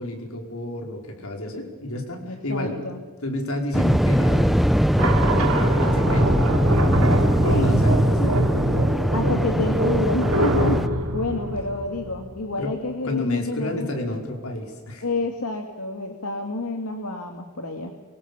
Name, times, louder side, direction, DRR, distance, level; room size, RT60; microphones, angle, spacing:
voice 1, 0.0-2.8 3.2-4.6 5.3-6.4 7.1-8.5 12.6-12.7 13.0-15.0, left 1 dB, 75° left, 3 dB, 5.0 m, -30 dB
voice 2, 2.2-3.0 7.4-7.8 8.2-8.3 9.1-13.9 15.0-17.9, left 2 dB, 90° left, 4 dB, 2.2 m, -29 dB
Waves surf, 3.7-10.9, equal, ahead, 0.6 m, -22 dB
Machine powering down, 5.0-12.4, right 1 dB, 75° right, 3.6 m, -23 dB
24.5 x 23.0 x 7.0 m, 1.4 s
head